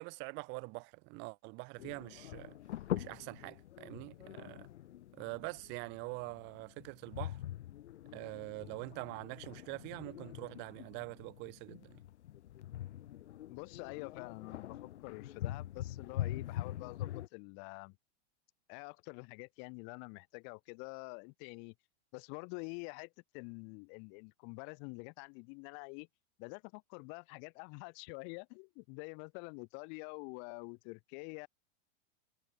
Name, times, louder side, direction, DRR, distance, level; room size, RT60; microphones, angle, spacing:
voice 1, 0.0-2.6 2.9-4.7 5.1-7.4 8.1-12.0, right 29 dB, 30° right, 3.0 m, -44 dB
sound 1, 1.8-17.3, left 13 dB, 75° left, 3.0 m, -44 dB
voice 2, 13.5-18.0 18.7-21.7 22.1-26.1 26.4-31.5, left 39 dB, 35° left, 3.7 m, -47 dB
supercardioid pair, 175°, 35 cm